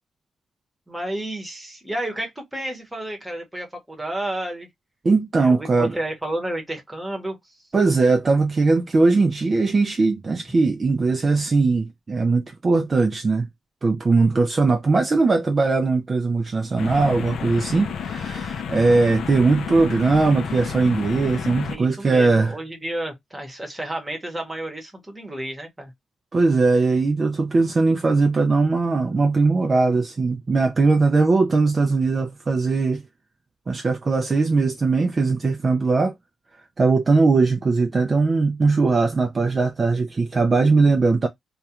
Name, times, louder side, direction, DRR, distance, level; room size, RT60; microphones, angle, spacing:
voice 1, 0.9-4.7 5.4-7.4 21.7-25.9, right 1 dB, 10° right, 0.9 m, -31 dB
voice 2, 5.0-6.0 7.7-13.5 13.8-22.5 26.3-33.0 33.7-36.1 36.8-41.3, right 3 dB, 30° right, 0.3 m, -20 dB
sound 1, 16.8-21.8, left 7 dB, 70° left, 0.3 m, -31 dB
2.3 x 2.2 x 2.8 m
cardioid pair, 130°, 0 cm